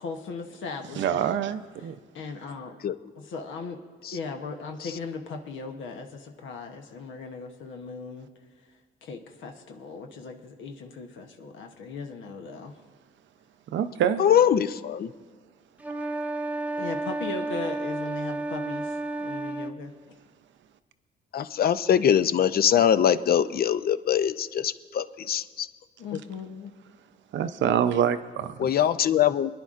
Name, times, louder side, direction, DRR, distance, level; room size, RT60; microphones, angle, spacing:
voice 1, 0.0-1.4 1.8-2.8 3.1-3.8 4.1-8.3 9.0-12.7 16.8-19.9 26.0-26.7, left 4 dB, 75° left, 4 dB, 1.0 m, -38 dB
voice 2, 1.0-2.0 13.7-14.2 27.3-28.7, right 9 dB, 70° right, 11 dB, 0.6 m, -25 dB
voice 3, 14.2-15.1 21.3-25.7 28.6-29.5, left 9 dB, 50° left, 13 dB, 0.5 m, -22 dB
sound 1, 15.8-19.8, right 2 dB, 5° right, 0.5 m, -31 dB
25.5 x 10.5 x 2.5 m, 1.5 s
cardioid pair, 90°, 20 cm